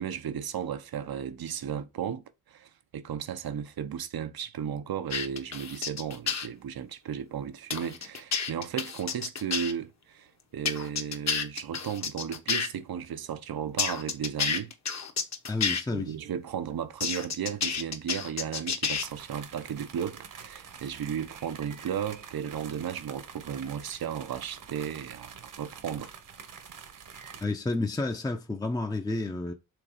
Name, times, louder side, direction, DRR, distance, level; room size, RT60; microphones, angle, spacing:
voice 1, 0.0-14.7 15.9-26.1, right 8 dB, 85° right, 0.9 m, -35 dB
sound 1, 5.1-6.5 7.7-9.7 10.7-12.7 13.8-15.8 17.0-19.0, left 6 dB, 50° left, 1.2 m, -30 dB
voice 2, 15.5-16.1 27.4-29.5, left 2 dB, 10° left, 0.6 m, -30 dB
sound 2, 18.9-27.4, right 6 dB, 60° right, 1.1 m, -47 dB
6.2 x 4.0 x 4.9 m
wide cardioid pair, 160°, 35 cm